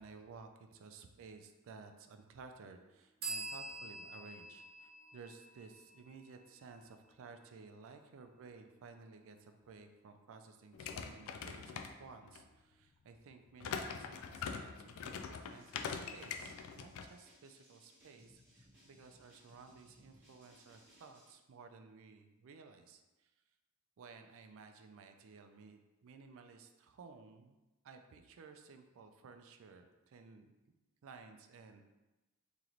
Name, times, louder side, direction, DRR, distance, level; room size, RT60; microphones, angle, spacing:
voice 1, 0.0-23.3 24.0-27.6 27.8-30.5 31.0-31.9, right 4 dB, 65° right, 7 dB, 0.4 m, -56 dB
sound 1, 3.2-6.8, right 3 dB, 45° right, 0.8 m, -46 dB
sound 2, 10.7-12.4 13.6-17.1, left 6 dB, 65° left, 0.3 m, -43 dB
sound 3, 15.4-21.3, equal, 10° right, 1.4 m, -65 dB
3.0 x 3.0 x 3.8 m, 1.1 s
head